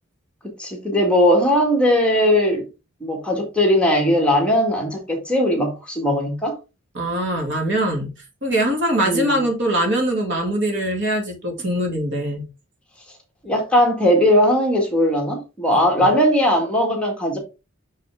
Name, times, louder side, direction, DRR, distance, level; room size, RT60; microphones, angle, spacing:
voice 1, 0.6-2.6 3.0-6.6 9.0-9.4 13.4-17.4, equal, 5° left, 1.8 m, -19 dB
voice 2, 6.9-8.1 8.4-12.5 16.0-16.1, right 1 dB, 60° right, 2.3 m, -22 dB
6.5 x 5.8 x 3.5 m
head